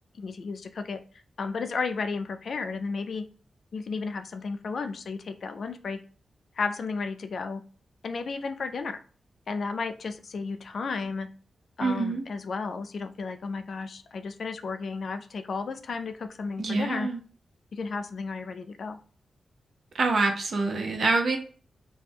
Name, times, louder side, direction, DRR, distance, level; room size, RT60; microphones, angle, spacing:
voice 1, 0.2-1.0 1.4-3.2 3.7-6.0 6.6-7.6 8.0-9.0 9.5-11.3 11.8-17.1 17.7-19.0, left 4 dB, 65° left, 8 dB, 0.3 m, -33 dB
voice 2, 11.8-12.2 16.6-17.2 19.9-21.4, right 3 dB, 65° right, 4 dB, 0.6 m, -26 dB
2.4 x 2.2 x 3.3 m, 0.41 s
cardioid pair, 85°, 0 cm